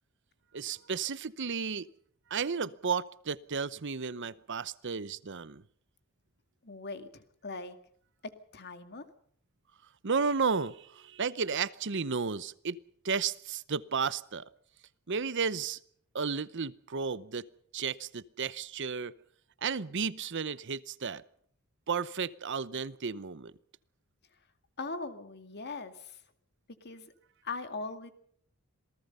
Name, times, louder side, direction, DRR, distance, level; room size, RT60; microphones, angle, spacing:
voice 1, 0.5-1.9 2.3-5.6 10.0-12.8 13.0-14.4 15.1-15.8 16.1-17.5 17.7-19.1 19.6-21.2 21.9-23.5, right 5 dB, 55° right, 17 dB, 0.8 m, -33 dB
voice 2, 6.6-7.8 8.2-9.1 24.8-26.2 26.8-27.1 27.4-28.1, left 3 dB, 50° left, 9 dB, 2.2 m, -40 dB
27.0 x 18.5 x 5.5 m, 0.62 s
head